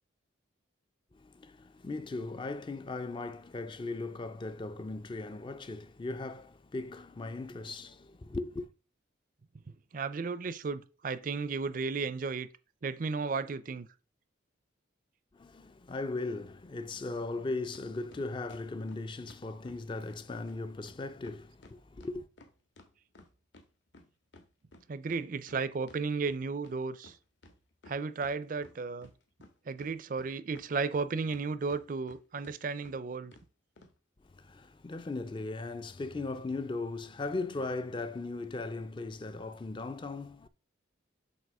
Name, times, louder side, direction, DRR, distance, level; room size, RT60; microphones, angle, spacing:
voice 1, 1.1-8.7 15.3-22.3 34.2-40.5, left 3 dB, 25° left, 0.3 m, -38 dB
voice 2, 9.7-12.5 12.8-13.9 24.9-27.2 27.9-29.1 29.7-33.3, right 4 dB, 40° right, 0.4 m, -34 dB
sound 1, 17.7-17.9 18.1-19.8 20.1-20.2 20.5-20.6 20.9-21.0 21.2-23.7 23.9-26.7 27.0-27.1 27.4-28.3 28.6-29.5 29.8-31.4 31.7-32.2 32.4-32.6 32.8-32.9 33.3-33.5 33.8-33.9, left 2 dB, 65° left, 1.3 m, -55 dB
7.5 x 2.9 x 5.9 m
head